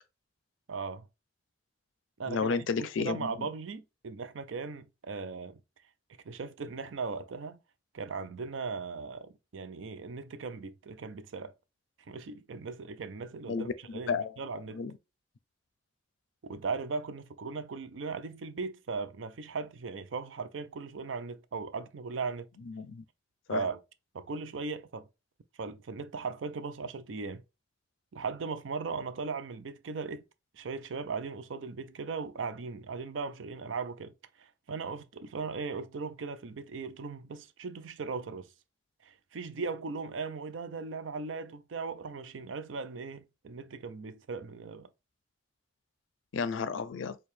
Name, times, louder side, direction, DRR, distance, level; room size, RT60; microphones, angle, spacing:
voice 1, 0.7-1.1 2.2-5.6 6.2-7.6 7.9-11.5 12.0-14.8 16.4-22.5 23.5-23.8 24.1-25.1 25.6-27.4 28.1-30.2 30.5-38.5 39.0-44.9, right 4 dB, 85° right, 0.5 m, -38 dB
voice 2, 2.3-3.3 13.5-14.3 14.7-14.9 22.7-23.0 23.5-23.6 46.3-47.2, left 5 dB, 85° left, 0.4 m, -32 dB
4.5 x 2.3 x 3.2 m
head